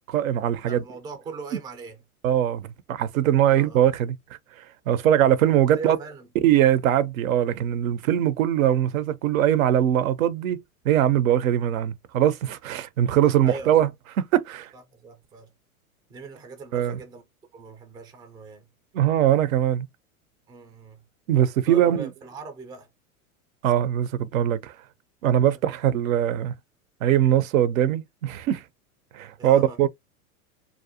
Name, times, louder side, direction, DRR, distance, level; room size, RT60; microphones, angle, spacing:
voice 1, 0.1-0.8 2.2-4.2 4.9-6.0 6.4-13.9 14.2-14.7 16.7-17.0 18.9-19.9 21.3-22.1 23.6-24.7 25.2-26.5 27.0-28.6 29.1-29.9, right 11 dB, 70° right, 0.5 m, -21 dB
voice 2, 0.7-2.0 3.5-3.8 5.7-6.3 13.4-13.8 14.7-15.5 16.1-17.2 17.5-18.7 20.5-21.1 21.7-22.9 25.4-25.6 29.4-29.8, right 4 dB, 10° right, 0.3 m, -40 dB
2.5 x 2.1 x 2.7 m
hypercardioid pair, 95°, 43 cm